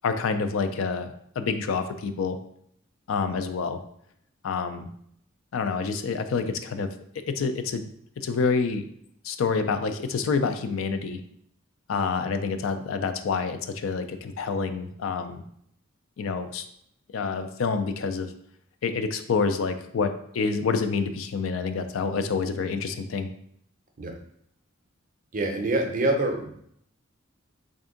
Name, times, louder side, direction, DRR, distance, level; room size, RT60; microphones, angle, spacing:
voice 1, 0.0-2.4 3.1-3.8 4.4-4.9 5.5-6.9 7.3-7.9 8.2-8.8 9.2-11.2 11.9-15.4 16.2-16.6 17.1-18.3 18.8-23.3, left 5 dB, 75° left, 9 dB, 0.4 m, -27 dB
voice 2, 25.3-26.5, right 2 dB, 40° right, 3 dB, 0.5 m, -25 dB
3.4 x 2.6 x 3.7 m, 0.69 s
head